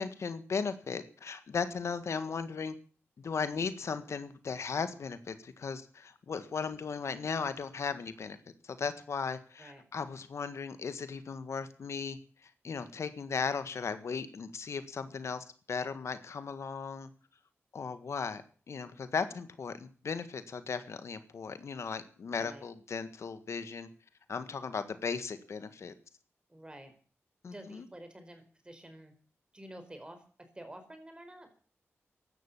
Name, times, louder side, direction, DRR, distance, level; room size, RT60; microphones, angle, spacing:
voice 1, 0.0-2.7 3.2-8.4 8.6-17.1 17.7-18.4 18.7-23.9 24.3-25.9 27.4-27.9, left 5 dB, 70° left, 11 dB, 1.6 m, -37 dB
voice 2, 22.3-22.7 26.5-26.9 27.4-29.1 29.5-31.6, right 1 dB, 20° right, 7 dB, 4.7 m, -49 dB
15.0 x 12.0 x 7.3 m, 0.41 s
wide cardioid pair, 95°, 5 cm